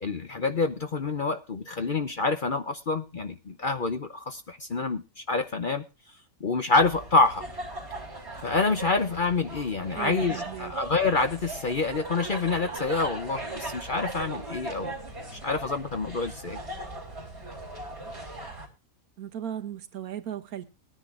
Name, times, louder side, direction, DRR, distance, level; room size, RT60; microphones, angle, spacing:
voice 1, 0.0-5.8 6.4-7.5 8.4-14.9 15.4-16.6, left 3 dB, 45° left, 9 dB, 0.7 m, -27 dB
sound 1, 6.8-18.7, right 2 dB, 45° right, 3.4 m, -38 dB
voice 2, 9.9-10.8 19.2-20.6, right 10 dB, 75° right, 9 dB, 1.5 m, -36 dB
20.5 x 10.0 x 2.5 m, 0.28 s
omnidirectional pair, 1.6 m